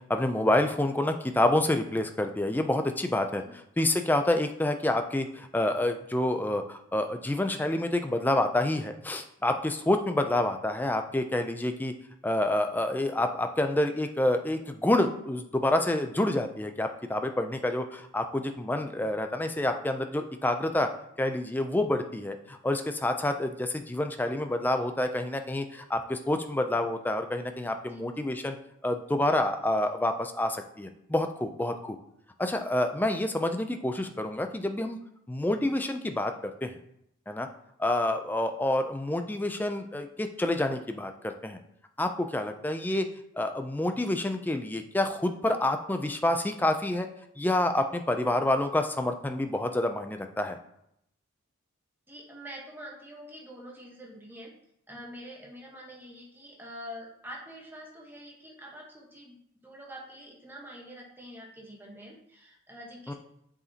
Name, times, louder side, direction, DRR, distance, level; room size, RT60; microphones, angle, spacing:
voice 1, 0.1-11.9 12.2-20.9 21.2-28.6 28.8-32.0 32.4-35.0 35.3-36.7 37.3-37.5 37.8-41.6 42.0-43.1 43.4-47.1 47.4-50.6 63.1-63.2, left 1 dB, 10° left, 7 dB, 0.3 m, -28 dB
voice 2, 52.1-54.5 54.9-59.4 59.6-63.1, equal, 10° right, -2 dB, 1.1 m, -45 dB
7.8 x 4.9 x 2.8 m, 0.78 s
head